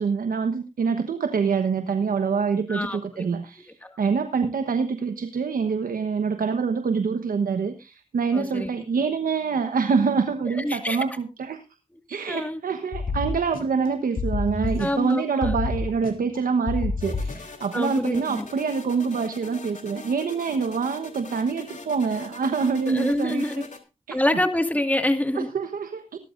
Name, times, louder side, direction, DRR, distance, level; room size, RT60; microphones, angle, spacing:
voice 1, 0.0-11.6 12.1-23.7 24.1-24.2 25.4-26.2, right 5 dB, 90° right, 8 dB, 1.2 m, -26 dB
voice 2, 2.7-3.2 3.8-4.0 8.3-8.7 10.5-11.0 12.3-12.6 14.8-15.6 17.7-18.5 22.8-23.6 24.1-25.5, left 1 dB, 10° left, 7 dB, 2.0 m, -26 dB
sound 1, 12.9-13.9 14.2-15.1 15.4-16.4 16.7-17.6, left 3 dB, 85° left, 2.7 m, -29 dB
sound 2, 17.0-23.8, left 3 dB, 60° left, 3.3 m, -42 dB
18.5 x 13.0 x 2.6 m, 0.29 s
cardioid pair, 45°, 14 cm